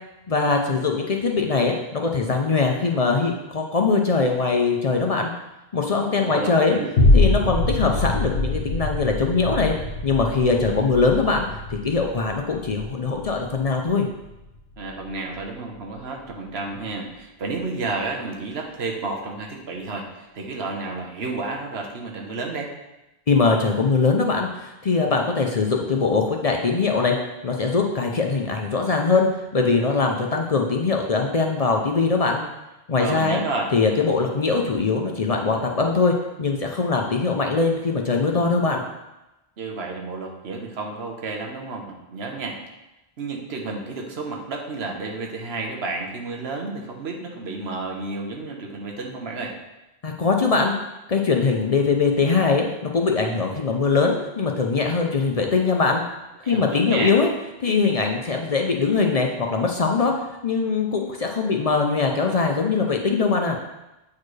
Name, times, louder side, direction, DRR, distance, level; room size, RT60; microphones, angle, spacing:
voice 1, 0.3-5.3 5.7-6.8 7.1-9.7 10.0-11.4 11.7-14.1 23.3-27.2 27.4-32.4 32.9-33.4 33.7-38.8 50.0-50.7 51.1-56.0 56.4-57.3 57.6-60.1 60.4-63.6, left 4 dB, 45° left, 2 dB, 0.6 m, -21 dB
voice 2, 6.0-6.9 14.8-22.7 33.0-33.7 39.6-42.6 43.2-49.5 56.4-57.2, right 3 dB, 85° right, 1 dB, 1.2 m, -31 dB
sound 1, 7.0-15.5 16.0-16.1, left 2 dB, 80° left, 1.2 m, -24 dB
8.3 x 4.4 x 3.2 m, 0.97 s
omnidirectional pair, 1.0 m